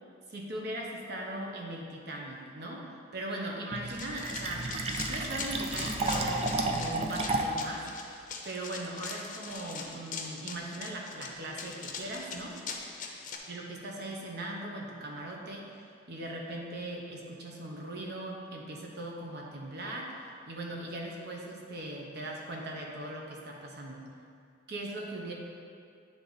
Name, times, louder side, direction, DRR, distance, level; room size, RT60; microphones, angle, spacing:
voice 1, 0.3-4.7 5.0-7.9 8.4-12.6 13.5-24.0 24.7-25.3, right 1 dB, 60° right, -1 dB, 1.0 m, -39 dB
Fill (with liquid), 3.7-7.7, right 2 dB, 30° right, 0.4 m, -32 dB
Run, 3.9-13.4, left 5 dB, 45° left, 0.6 m, -41 dB
9.1 x 3.5 x 4.0 m, 2.3 s
head